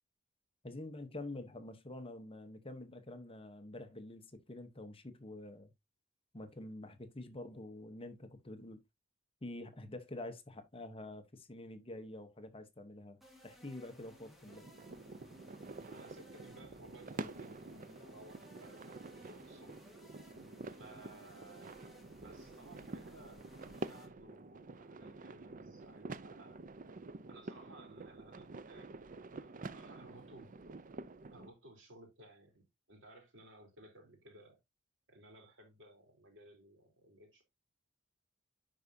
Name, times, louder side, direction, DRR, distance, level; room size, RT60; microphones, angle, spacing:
voice 1, 0.6-5.7 6.3-8.8 9.4-14.7, left 2 dB, 30° left, 1.0 m, -47 dB
sound 1, 13.2-24.1, left 1 dB, ahead, 2.1 m, -60 dB
sound 2, 14.5-31.5, right 3 dB, 40° right, 0.5 m, -48 dB
voice 2, 15.9-19.8 20.7-26.6 27.3-30.5 31.3-34.6 35.1-37.4, right 1 dB, 65° right, 3.4 m, -58 dB
10.5 x 4.7 x 2.7 m
head